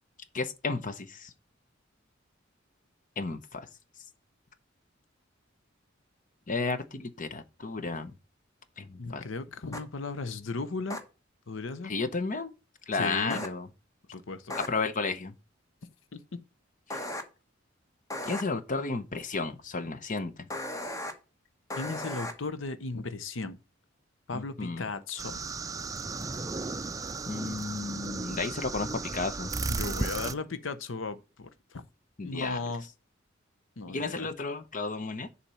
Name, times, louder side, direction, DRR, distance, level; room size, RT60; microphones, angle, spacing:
voice 1, 0.3-1.3 3.2-3.7 6.5-8.1 8.8-9.2 11.8-12.5 12.9-13.7 14.5-15.3 18.2-20.3 24.3-24.8 27.3-29.5 32.2-32.6 33.9-35.3, left 3 dB, 40° left, 0.8 m, -33 dB
voice 2, 9.0-11.0 11.5-12.0 12.9-13.5 14.1-14.6 16.1-16.2 21.8-23.6 24.3-25.4 29.7-31.8 32.2-32.8 33.8-34.3, left 3 dB, 75° left, 0.8 m, -36 dB
sound 1, 9.7-9.8 10.9-11.0 13.3-13.5 14.5-14.7 16.9-17.2 18.1-18.4 20.5-21.1 21.7-22.3, left 1 dB, 15° left, 1.2 m, -35 dB
sound 2, 25.2-30.3, right 3 dB, 15° right, 0.4 m, -35 dB
7.2 x 4.2 x 6.8 m
head